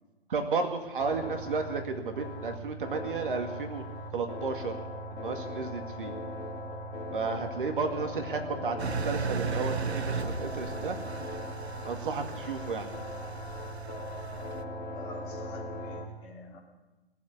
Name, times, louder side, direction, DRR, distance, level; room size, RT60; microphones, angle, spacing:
voice 1, 0.3-3.8 4.1-4.7 5.1-6.1 7.1-11.0 11.8-12.9, right 4 dB, 55° right, 5 dB, 2.1 m, -33 dB
sound 1, 1.0-16.1, left 1 dB, 50° left, 3.9 m, -39 dB
voice 2, 8.1-9.2 14.8-16.6, left 3 dB, 30° left, -1 dB, 3.0 m, -47 dB
Engine, 8.8-14.6, right 5 dB, 85° right, 0.9 m, -36 dB
19.0 x 7.6 x 9.6 m, 1.1 s
figure-of-eight pair, 135°, 32 cm